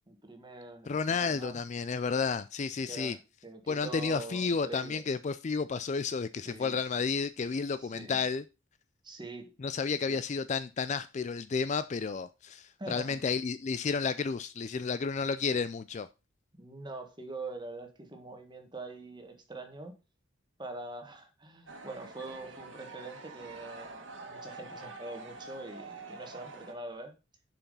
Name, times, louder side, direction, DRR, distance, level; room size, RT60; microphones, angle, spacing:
voice 1, 0.1-1.6 2.8-5.0 6.4-6.8 7.8-8.2 9.0-9.5 10.1-10.2 12.8-13.2 16.6-20.0 20.6-27.1, right 2 dB, 20° right, 1.5 m, -44 dB
voice 2, 0.9-3.2 3.7-8.4 9.6-16.1, left 5 dB, 35° left, 0.3 m, -31 dB
sound 1, 21.7-26.7, right 3 dB, 70° right, 1.6 m, -46 dB
7.0 x 5.8 x 5.4 m
head